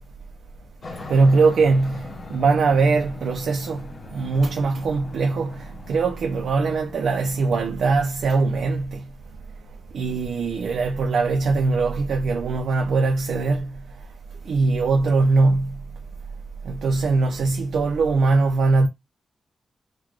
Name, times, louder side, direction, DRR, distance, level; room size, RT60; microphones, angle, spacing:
Aircraft, 0.8-7.7, left 3 dB, 35° left, 0.7 m, -41 dB
voice 1, 1.1-9.0 9.9-13.8 14.5-15.8 16.6-18.9, right 3 dB, 80° right, 0.4 m, -21 dB
3.8 x 2.2 x 3.0 m
wide cardioid pair, 175°, 0 cm